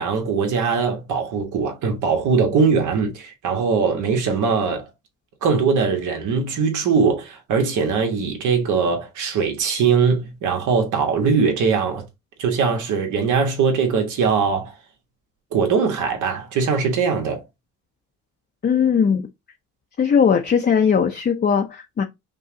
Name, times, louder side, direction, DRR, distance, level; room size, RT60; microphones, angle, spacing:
voice 1, 0.0-4.9 5.4-12.0 12.4-14.7 15.5-17.4, right 5 dB, 80° right, 1.6 m, -21 dB
voice 2, 18.6-19.3 20.0-22.0, left 7 dB, 35° left, 0.6 m, -19 dB
5.4 x 2.3 x 3.8 m
cardioid pair, 90°, 30 cm